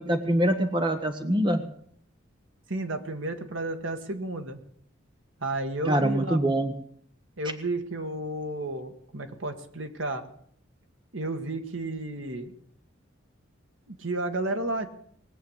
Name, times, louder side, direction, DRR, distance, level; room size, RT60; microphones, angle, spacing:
voice 1, 0.0-1.6 5.9-6.7, right 1 dB, 25° right, 7 dB, 1.1 m, -24 dB
voice 2, 2.7-4.6 5.4-6.4 7.4-10.2 11.1-12.5 13.9-14.9, right 2 dB, 75° right, 6 dB, 1.6 m, -32 dB
20.0 x 8.0 x 8.0 m, 0.65 s
head